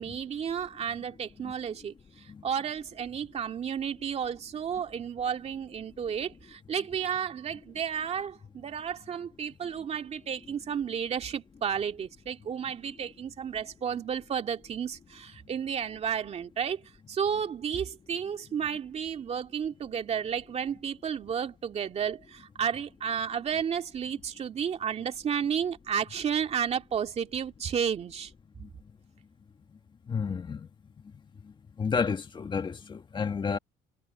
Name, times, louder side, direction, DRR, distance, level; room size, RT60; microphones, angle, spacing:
voice 1, 0.0-28.3, right 7 dB, 40° right, 2.2 m, -32 dB
voice 2, 30.1-30.7 31.8-33.6, left 5 dB, 30° left, 1.8 m, -30 dB
cardioid pair, 110°, 16 cm